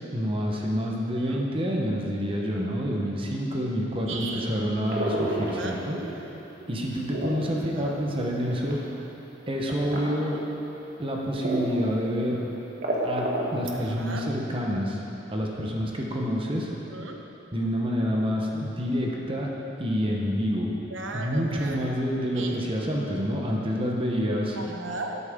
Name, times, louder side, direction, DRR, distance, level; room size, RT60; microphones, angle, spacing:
voice 1, 0.1-5.9 6.7-8.8 9.5-10.4 11.0-12.4 13.0-15.0 15.3-16.7 17.5-19.5 19.8-20.7 21.1-24.6, equal, 30° right, -2 dB, 1.0 m, -28 dB
voice 2, 0.8-1.4 4.0-4.6 5.5-5.8 7.7-8.0 9.9-10.4 13.7-14.3 16.7-17.2 20.9-21.9 22.3-22.6 24.6-25.2, right 3 dB, 75° right, 2 dB, 1.0 m, -37 dB
sound 1, 4.9-6.2 6.6-8.9 9.7-10.1 10.7-10.8 11.4-11.9 12.2-12.3 12.6-13.7, right 1 dB, 50° right, 1.5 m, -30 dB
12.5 x 8.2 x 3.7 m, 3.0 s
head